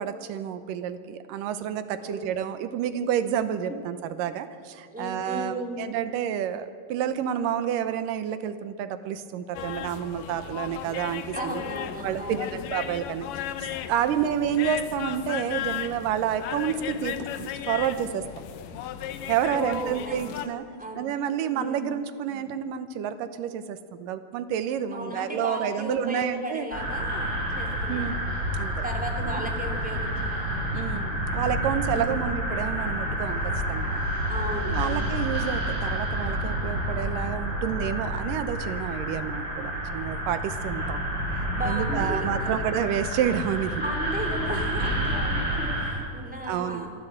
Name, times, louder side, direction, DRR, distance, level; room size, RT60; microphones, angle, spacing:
voice 1, 0.0-11.6 12.0-13.3 13.9-18.4 19.3-20.7 21.0-26.7 27.9-28.2 28.5-28.8 29.2-29.5 30.7-34.0 34.7-41.0 41.7-43.8 46.4-46.9, right 9 dB, 80° right, 11 dB, 2.5 m, -29 dB
voice 2, 4.9-5.8 11.3-12.6 14.1-14.2 19.5-20.3 20.8-21.1 21.5-21.9 24.9-28.1 28.8-30.6 31.9-32.3 34.3-35.2 38.7-38.8 41.5-42.5 43.8-46.9, right 1 dB, 5° right, 0 dB, 2.0 m, -35 dB
sound 1, 9.5-20.5, left 10 dB, 80° left, 2.4 m, -35 dB
sound 2, 26.7-45.9, equal, 30° right, 7.0 m, -29 dB
24.5 x 13.5 x 7.9 m, 2.2 s
omnidirectional pair, 3.9 m